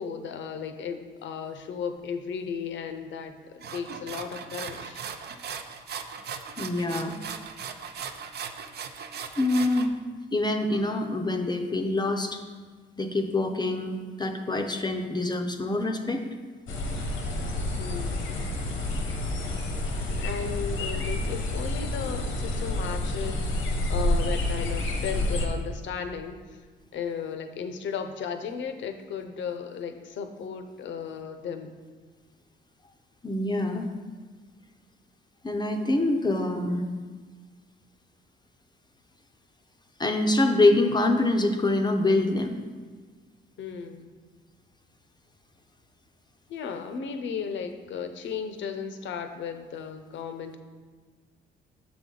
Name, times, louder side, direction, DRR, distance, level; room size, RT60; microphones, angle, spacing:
voice 1, 0.0-5.0 17.8-18.5 20.2-23.6 23.9-26.4 26.9-31.7 43.6-44.1 46.5-50.6, left 6 dB, 70° left, 7 dB, 0.7 m, -35 dB
sound 1, 3.6-9.9, right 6 dB, 55° right, 0.5 m, -38 dB
voice 2, 6.6-7.2 9.4-9.9 10.3-12.4 13.0-16.2 33.2-33.8 35.4-36.9 40.0-42.6, left 2 dB, 20° left, 4 dB, 0.5 m, -25 dB
sound 2, 16.7-25.5, left 1 dB, 90° left, 1.0 m, -29 dB
7.1 x 5.1 x 3.8 m, 1.5 s
cardioid pair, 90°, 20 cm